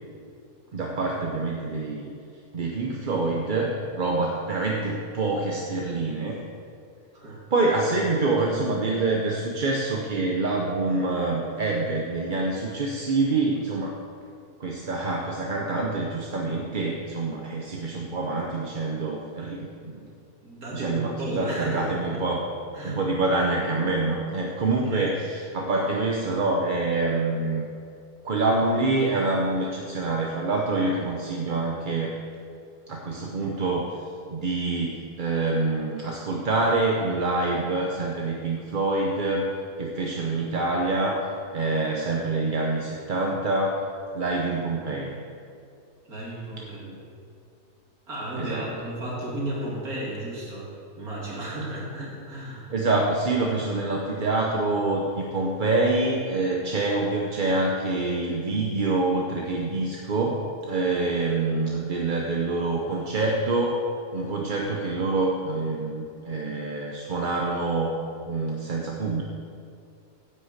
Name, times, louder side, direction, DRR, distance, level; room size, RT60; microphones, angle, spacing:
voice 1, 0.7-2.1 2.5-6.4 7.5-14.0 14.6-20.1 20.7-22.4 22.8-27.6 28.2-32.1 32.9-34.0 34.3-39.5 39.8-43.8 44.1-45.1 48.4-48.7 52.7-63.8 64.1-67.9 68.2-69.2, right 3 dB, 40° right, -1 dB, 0.9 m, -26 dB
voice 2, 20.4-22.2 22.7-23.0 24.9-25.0 46.1-47.0 48.1-52.7, right 1 dB, 75° right, -5 dB, 3.1 m, -34 dB
10.5 x 6.7 x 8.0 m, 2.4 s
omnidirectional pair, 1.6 m